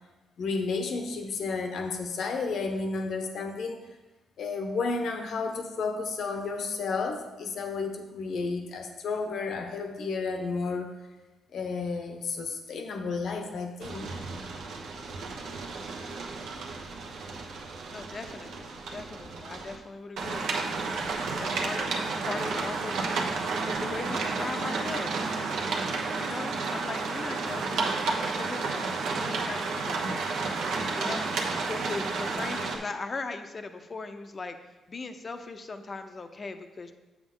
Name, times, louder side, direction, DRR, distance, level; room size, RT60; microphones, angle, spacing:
voice 1, 0.4-3.9 4.4-10.9 11.5-14.1, left 4 dB, 65° left, 5 dB, 1.0 m, -32 dB
sound 1, 13.8-19.8 20.2-32.8, right 4 dB, 80° right, 1.1 m, -32 dB
voice 2, 17.9-20.8 21.4-23.2 23.7-25.3 26.1-30.3 30.9-31.3 31.6-34.6 34.9-36.9, left 3 dB, 35° left, 8 dB, 0.6 m, -39 dB
7.7 x 7.1 x 3.8 m, 1.1 s
cardioid pair, 105°, 0 cm